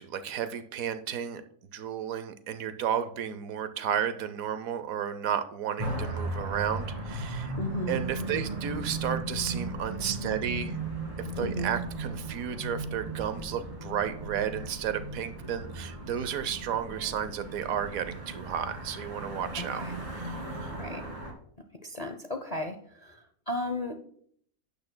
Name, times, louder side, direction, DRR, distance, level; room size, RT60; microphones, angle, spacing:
voice 1, 0.0-1.4 1.7-7.5 7.9-10.8 11.2-19.8 20.2-20.4 20.6-20.7, right 9 dB, 75° right, 11 dB, 1.1 m, -33 dB
sound 1, 5.8-21.3, right 2 dB, 25° right, 1.7 m, -36 dB
voice 2, 7.5-8.4 11.4-11.7 19.6-20.0 20.8-21.0 21.8-24.0, left 2 dB, 45° left, 5 dB, 0.5 m, -35 dB
12.0 x 9.0 x 2.2 m, 0.62 s
omnidirectional pair, 1.5 m